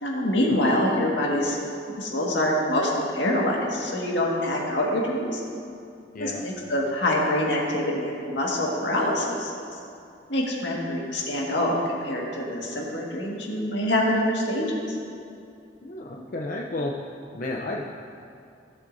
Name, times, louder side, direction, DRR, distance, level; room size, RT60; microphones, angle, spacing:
voice 1, 0.0-1.6 1.9-5.4 6.2-9.5 10.3-15.0, left 1 dB, 75° left, -2 dB, 1.8 m, -25 dB
voice 2, 15.8-16.9 17.3-17.8, left 2 dB, 45° left, -1 dB, 0.6 m, -32 dB
16.5 x 7.6 x 2.7 m, 2.5 s
head